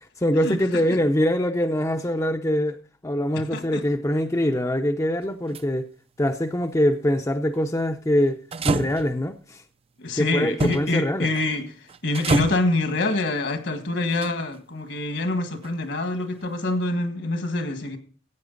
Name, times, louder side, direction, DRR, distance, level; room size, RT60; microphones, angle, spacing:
voice 1, 0.2-2.8 3.0-5.9 6.2-8.4 8.6-9.6 10.2-11.3, equal, 15° left, 0.6 m, -23 dB
sound 1, 5.2-5.6 8.5-9.3 10.6-10.9 11.3-11.6 11.9-12.7 14.1-14.6 15.6-15.7, right 3 dB, 30° right, 0.5 m, -27 dB
voice 2, 10.0-11.7 12.0-18.0, left 2 dB, 65° left, 1.6 m, -25 dB
15.0 x 8.9 x 3.9 m
head